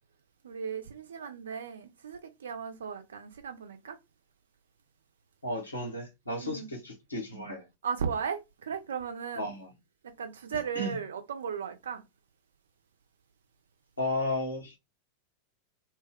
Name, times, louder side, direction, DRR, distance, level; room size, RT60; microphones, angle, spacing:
voice 1, 0.4-4.0 6.4-6.7 7.8-9.5 10.2-12.0, right 6 dB, 65° right, 0.6 m, -36 dB
voice 2, 5.4-7.7 9.3-9.7 10.5-10.9 14.0-14.8, left 1 dB, 80° left, 1.2 m, -34 dB
2.9 x 2.2 x 3.3 m
figure-of-eight pair, 90°, 0 cm